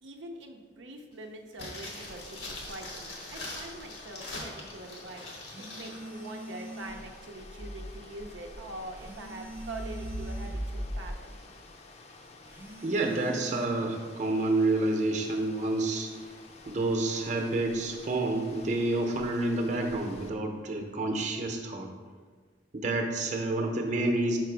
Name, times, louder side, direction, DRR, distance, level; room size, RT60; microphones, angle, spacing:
voice 1, 0.0-11.4, right 2 dB, 85° right, 2 dB, 0.6 m, -44 dB
sound 1, 1.5-6.0 6.2-6.3, left 2 dB, 90° left, 1.5 m, -42 dB
sound 2, 2.0-20.3, equal, 35° left, 0.5 m, -45 dB
sound 3, 5.4-7.2 8.9-10.7 12.5-13.7, right 1 dB, 10° right, 0.5 m, -44 dB
voice 2, 12.8-16.1 16.7-21.9 22.7-24.4, right 2 dB, 40° right, 2 dB, 0.8 m, -29 dB
5.9 x 4.5 x 4.6 m, 1.6 s
head